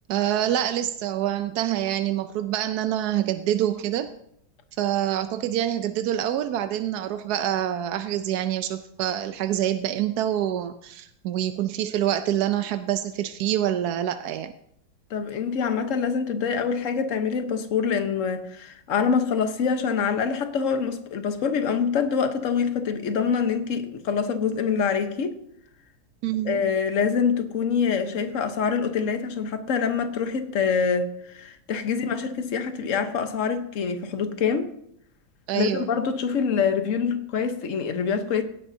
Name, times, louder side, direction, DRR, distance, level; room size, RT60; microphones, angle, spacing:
voice 1, 0.1-4.1 4.8-14.5 26.2-26.6 31.9-32.2 35.5-35.9, right 11 dB, 70° right, 0.9 m, -26 dB
voice 2, 15.1-25.4 26.4-34.7 35.5-38.4, left 6 dB, 50° left, 1.2 m, -25 dB
17.5 x 11.0 x 2.8 m
omnidirectional pair, 2.2 m